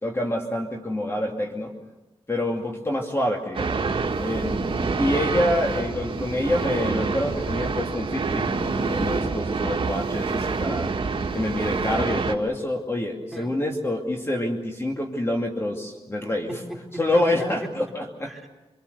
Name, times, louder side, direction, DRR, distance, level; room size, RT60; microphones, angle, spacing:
voice 1, 0.0-1.7 2.3-10.9 11.3-16.5 17.0-18.3, left 1 dB, 25° left, 1 dB, 2.6 m, -27 dB
sound 1, 3.5-12.3, right 4 dB, 55° right, 2.2 m, -27 dB
voice 2, 16.5-17.7 18.2-18.5, right 1 dB, ahead, 0 dB, 3.9 m, -37 dB
26.5 x 23.0 x 6.9 m, 1.1 s
cardioid pair, 70°, 10 cm